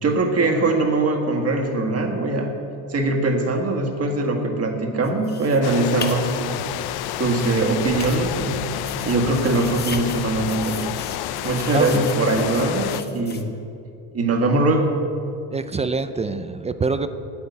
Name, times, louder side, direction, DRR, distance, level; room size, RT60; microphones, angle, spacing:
voice 1, 0.0-2.5 2.9-6.6 7.2-8.8 9.0-11.0 11.4-13.5 14.1-14.9, right 2 dB, 35° right, 3 dB, 1.7 m, -21 dB
sound 1, 5.0-13.4, left 5 dB, 25° left, 0.9 m, -38 dB
sound 2, 5.6-13.0, left 13 dB, 65° left, 0.5 m, -29 dB
voice 2, 11.7-12.1 15.5-17.1, right 4 dB, 15° right, 10 dB, 0.3 m, -25 dB
9.6 x 8.7 x 8.1 m, 2.7 s
cardioid pair, 130°, 41 cm